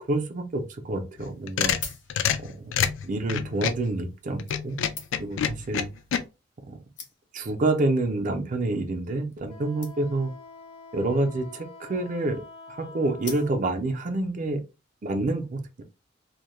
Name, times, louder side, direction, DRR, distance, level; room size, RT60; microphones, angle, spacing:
voice 1, 0.1-1.7 2.4-4.8 5.2-5.9 6.7-6.8 7.3-10.3 10.9-12.4 12.7-14.6 15.0-15.8, right 2 dB, 45° right, 0.5 m, -28 dB
sound 1, 1.2-3.9 4.4-6.2, left 8 dB, 85° left, 0.3 m, -27 dB
sound 2, 1.7-2.6 3.5-3.7 4.5-5.4 6.3-6.4 6.6-6.7 7.0-7.5 8.2-8.4 8.7-8.8 9.0-9.1 9.3-9.5 9.8-10.3 11.3-11.8 13.2-13.9 14.4-14.5, left 5 dB, 65° left, 0.8 m, -43 dB
Wind instrument woodwind instrument, 9.5-13.6, left 3 dB, 30° left, 0.5 m, -46 dB
2.2 x 2.0 x 3.0 m
head